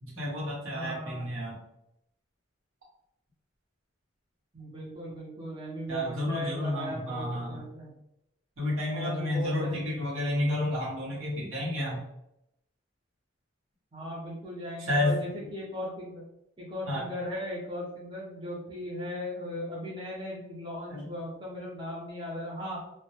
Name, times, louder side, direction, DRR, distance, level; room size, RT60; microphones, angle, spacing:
voice 1, 0.0-1.6 5.9-7.6 8.6-12.0 14.9-15.2 16.9-17.0 20.9-21.1, left 1 dB, 85° right, -5 dB, 0.9 m, -30 dB
voice 2, 0.7-1.3 4.5-7.9 8.9-10.2 13.9-16.2 16.6-22.8, left 1 dB, 25° right, -5 dB, 0.5 m, -37 dB
2.1 x 2.1 x 2.8 m, 0.82 s
head